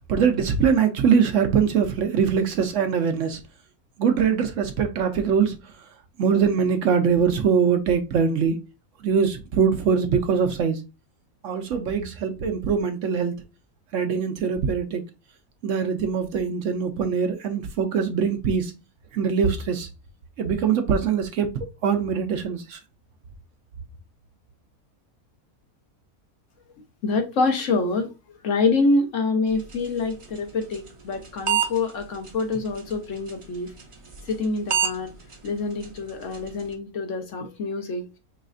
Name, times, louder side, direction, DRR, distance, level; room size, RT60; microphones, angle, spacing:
voice 1, 0.1-3.4 4.0-5.7 6.2-8.6 9.0-10.8 11.4-13.3 13.9-15.0 15.6-18.7 19.1-19.9 20.4-21.5 21.8-22.8, right 6 dB, 65° right, 0.8 m, -22 dB
voice 2, 27.0-28.1 28.4-33.7 34.3-35.1 35.4-38.0, left 3 dB, 60° left, 1.1 m, -26 dB
sound 1, 29.5-36.8, right 8 dB, 35° right, 0.5 m, -33 dB
4.9 x 3.2 x 2.4 m
omnidirectional pair, 1.5 m